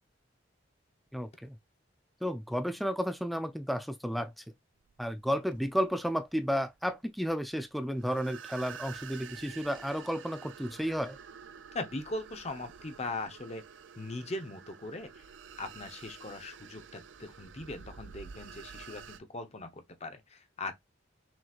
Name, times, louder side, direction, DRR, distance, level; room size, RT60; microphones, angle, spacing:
voice 1, 1.1-1.6 2.2-4.4 5.0-11.2, equal, ahead, 0.3 m, -32 dB
sound 1, 4.8-19.2, right 7 dB, 75° right, 0.4 m, -49 dB
voice 2, 11.7-13.6 14.0-15.2 15.6-20.7, left 2 dB, 35° left, 0.8 m, -40 dB
6.1 x 3.0 x 2.4 m
head